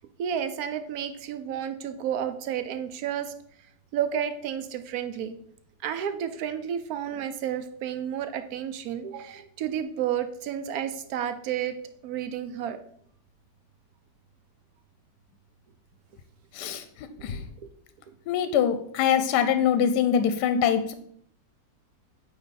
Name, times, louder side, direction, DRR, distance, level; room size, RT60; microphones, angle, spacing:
voice 1, 0.2-3.3 3.9-5.4 5.8-11.8 12.0-12.8 16.7-16.8 17.2-17.4, right 9 dB, 70° right, 9 dB, 1.0 m, -31 dB
voice 2, 16.5-16.8 17.2-17.4 18.3-20.9, left 8 dB, 75° left, 10 dB, 1.1 m, -23 dB
8.7 x 3.2 x 4.1 m, 0.65 s
omnidirectional pair, 1.8 m